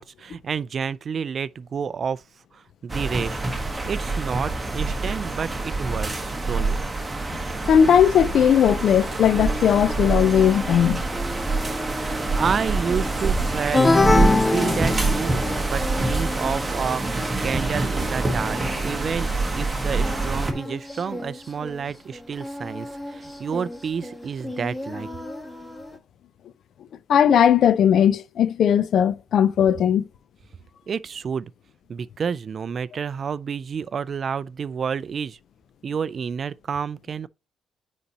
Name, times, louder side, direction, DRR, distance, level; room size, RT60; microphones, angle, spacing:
voice 1, 0.0-2.2 2.5-3.4 3.9-6.8 12.3-13.9 14.3-25.1 30.9-31.5 31.9-35.4 35.8-37.3, right 6 dB, 50° right, 0.4 m, -30 dB
sound 1, 2.9-20.5, right 3 dB, 20° right, 1.3 m, -26 dB
voice 2, 7.6-11.0 27.1-30.0, left 8 dB, 65° left, 0.5 m, -18 dB
Singing, 9.3-26.0, left 1 dB, 5° left, 1.3 m, -37 dB
sound 2, 13.7-15.6, left 2 dB, 25° left, 0.6 m, -19 dB
9.4 x 4.1 x 2.8 m
cardioid pair, 90°, 0 cm